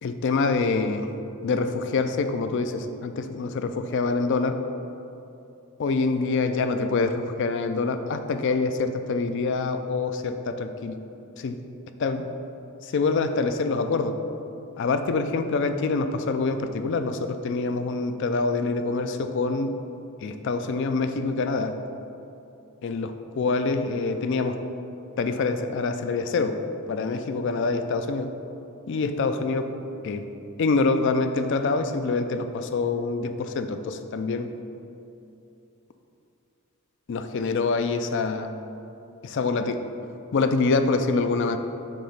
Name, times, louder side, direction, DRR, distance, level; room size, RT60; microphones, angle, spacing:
voice 1, 0.0-1.1 1.4-4.6 5.8-11.0 11.4-11.6 12.0-12.3 12.8-14.2 14.8-19.8 20.2-21.7 22.8-24.6 25.2-26.6 26.9-28.3 28.9-29.7 30.0-30.2 30.6-34.5 37.1-38.5 39.2-39.8 40.3-41.6, left 3 dB, 55° left, 8 dB, 0.4 m, -25 dB
7.3 x 2.9 x 5.4 m, 2.8 s
head